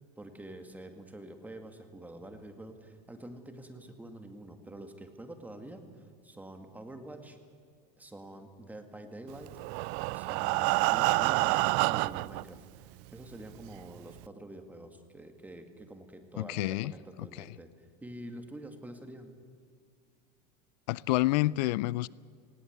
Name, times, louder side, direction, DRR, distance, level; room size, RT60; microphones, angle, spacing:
voice 1, 0.2-7.4 8.0-9.5 10.1-11.6 11.9-17.7 18.0-19.4, right 1 dB, 5° right, 2.1 m, -47 dB
Breathing, 9.5-12.4 13.2-13.3 13.7-13.8 14.2-14.3, right 23 dB, 60° right, 0.4 m, -28 dB
voice 2, 16.4-16.9 17.4-17.5 20.9-22.1, left 18 dB, 85° left, 0.4 m, -28 dB
19.5 x 17.0 x 8.0 m
supercardioid pair, 130°, 21 cm